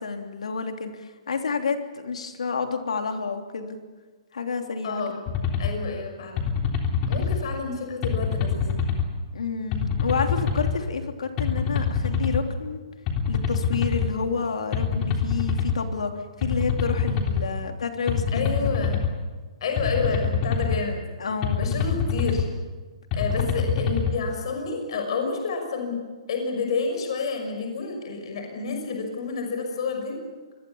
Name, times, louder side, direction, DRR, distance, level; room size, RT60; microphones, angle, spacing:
voice 1, 0.0-3.8 4.3-5.0 9.3-12.8 13.3-16.1 16.4-18.7 21.2-21.7 23.4-23.5, left 5 dB, 90° left, 5 dB, 3.3 m, -29 dB
voice 2, 4.8-5.2 5.6-6.4 7.1-8.7 18.3-19.0 19.6-21.0 21.6-22.5 23.1-26.0 26.3-30.2, left 4 dB, 55° left, 4 dB, 6.1 m, -29 dB
sound 1, 5.3-5.7 6.4-7.4 8.0-9.1 9.7-10.7 11.4-12.4 13.1-14.1 14.7-15.8 16.4-17.4 18.1-19.1 19.8-20.8 21.4-22.5 23.1-24.1, left 6 dB, 25° left, 3.5 m, -25 dB
26.0 x 21.5 x 7.2 m, 1.3 s
hypercardioid pair, 160°, 3 cm